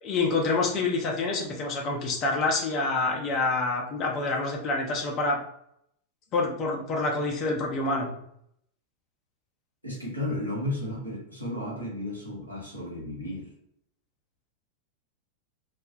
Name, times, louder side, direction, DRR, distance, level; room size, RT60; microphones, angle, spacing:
voice 1, 0.0-5.4 6.3-8.1, left 3 dB, 35° left, 0 dB, 0.6 m, -27 dB
voice 2, 9.8-13.5, left 1 dB, 90° right, -4 dB, 1.0 m, -33 dB
2.3 x 2.0 x 2.7 m, 0.72 s
figure-of-eight pair, 90°, 0 cm